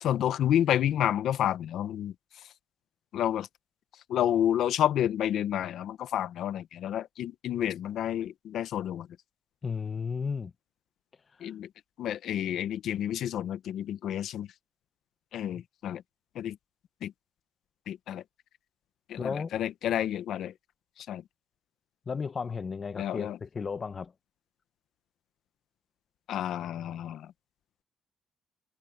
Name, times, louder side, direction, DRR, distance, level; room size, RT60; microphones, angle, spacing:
voice 1, 0.0-2.1 3.1-3.5 4.1-9.1 11.4-11.7 12.0-14.5 15.3-16.0 16.3-16.6 17.0-17.1 17.9-18.2 19.1-20.5 21.0-21.2 23.0-23.4 26.3-27.3, left 11 dB, 75° left, 1.0 m, -30 dB
voice 2, 9.6-10.5 15.5-15.6 19.2-19.5 22.1-24.1, left 5 dB, 40° left, 1.2 m, -34 dB
cardioid pair, 90°, 0 cm